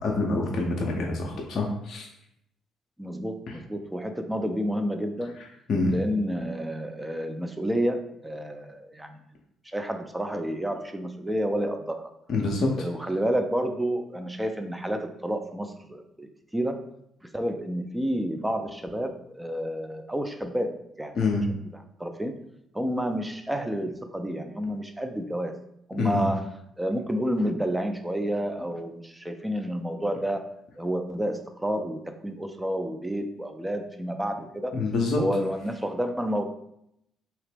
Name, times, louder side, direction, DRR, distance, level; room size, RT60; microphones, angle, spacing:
voice 1, 0.0-2.1 3.5-3.6 5.4-6.0 12.3-12.7 21.2-21.5 26.0-26.3 34.7-35.2, left 3 dB, 55° left, -1 dB, 0.6 m, -26 dB
voice 2, 3.0-5.3 5.9-9.2 9.7-12.1 12.8-16.8 17.3-20.7 21.0-21.1 22.0-22.3 22.7-25.5 25.9-26.4 26.8-30.5 30.8-34.8 35.2-36.4, equal, 10° right, 6 dB, 0.5 m, -30 dB
2.9 x 2.8 x 3.3 m, 0.77 s
hypercardioid pair, 50°, 0 cm